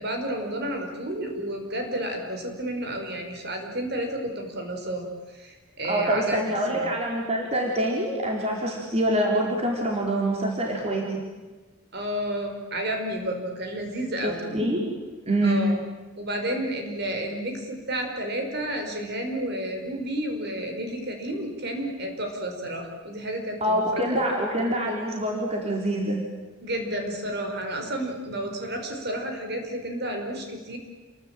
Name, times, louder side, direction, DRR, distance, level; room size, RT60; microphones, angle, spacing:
voice 1, 0.0-5.0 5.3-6.4 6.7-6.9 11.9-14.4 15.4-15.7 16.2-24.2 26.6-30.8, right 1 dB, 50° right, 4 dB, 5.3 m, -31 dB
voice 2, 5.9-11.0 14.2-14.8 15.2-15.7 23.6-26.2, right 1 dB, 30° right, -1 dB, 4.2 m, -25 dB
29.0 x 22.5 x 9.1 m, 1.3 s
head